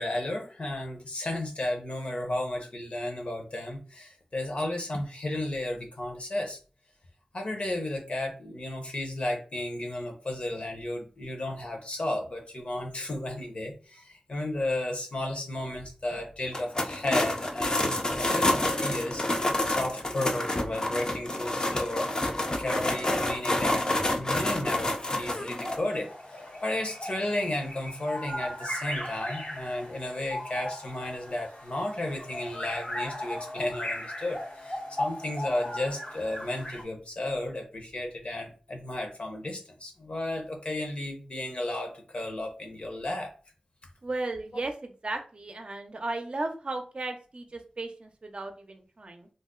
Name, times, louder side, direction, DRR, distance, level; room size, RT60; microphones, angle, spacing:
voice 1, 0.0-6.6 7.3-19.2 19.6-23.9 24.1-43.3, left 1 dB, 60° left, 2 dB, 0.8 m, -33 dB
sound 1, 16.5-25.8, left 1 dB, 35° left, 0.5 m, -28 dB
sound 2, 25.6-36.8, left 1 dB, 80° left, 1.2 m, -37 dB
voice 2, 44.0-49.3, right 2 dB, 50° right, 5 dB, 0.5 m, -35 dB
2.6 x 2.1 x 3.6 m, 0.37 s
wide cardioid pair, 70°, 2 cm